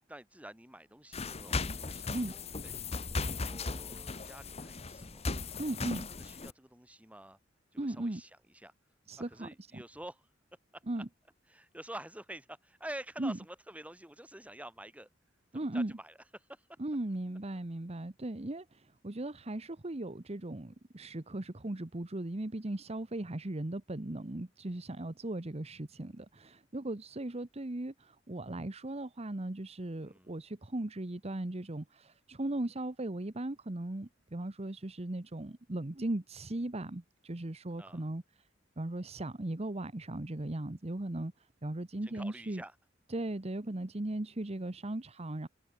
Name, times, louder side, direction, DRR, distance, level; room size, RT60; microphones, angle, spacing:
voice 1, 0.1-2.8 3.3-5.2 5.9-7.4 7.7-8.7 9.2-10.3 10.7-11.0 11.5-15.1 15.5-16.2 16.5-16.7 30.0-30.3 37.8-38.1 42.0-42.7, right 1 dB, 10° right, 5.9 m, -48 dB
sound 1, 1.1-6.5, left 3 dB, 35° left, 1.2 m, -37 dB
voice 2, 5.6-6.1 7.8-8.2 9.1-9.8 10.9-11.1 13.2-13.4 15.5-15.9 16.8-38.2 38.8-42.6 43.1-45.5, right 1 dB, 35° right, 1.0 m, -38 dB
head